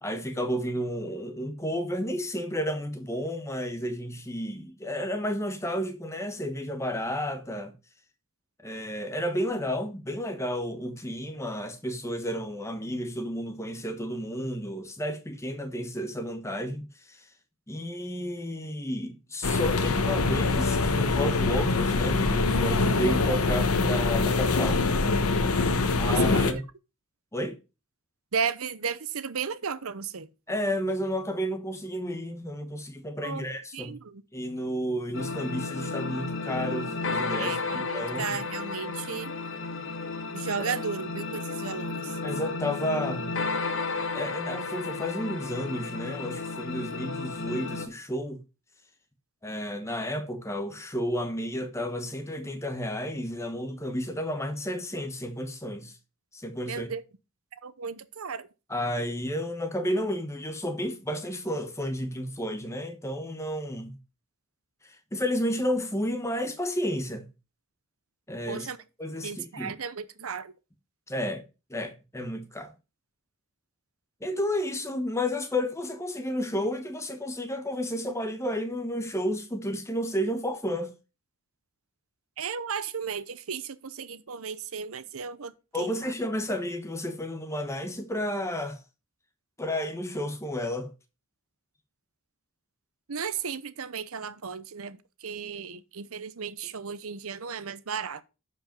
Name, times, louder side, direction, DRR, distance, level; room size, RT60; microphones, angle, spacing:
voice 1, 0.0-7.7 8.6-17.3 17.7-24.8 26.0-26.6 27.3-27.5 30.5-33.9 34.3-38.4 40.7-40.8 42.2-43.3 44.1-48.4 49.4-55.9 56.3-56.9 58.7-64.0 64.8-67.3 68.3-68.7 69.0-69.7 71.1-71.4 71.7-72.7 74.2-80.9 85.7-88.8 89.6-90.9, equal, 15° left, 1.2 m, -32 dB
sound 1, 19.4-26.5, left 3 dB, 90° left, 1.2 m, -24 dB
voice 2, 26.1-26.6 28.3-30.3 33.2-33.5 33.7-34.2 37.4-39.3 40.3-42.2 56.7-57.0 57.6-58.5 68.5-68.8 69.2-70.5 82.4-86.1 93.1-98.2, right 6 dB, 75° right, 0.8 m, -34 dB
sound 2, 35.1-47.9, left 3 dB, 60° left, 1.2 m, -33 dB
11.0 x 5.3 x 5.2 m
head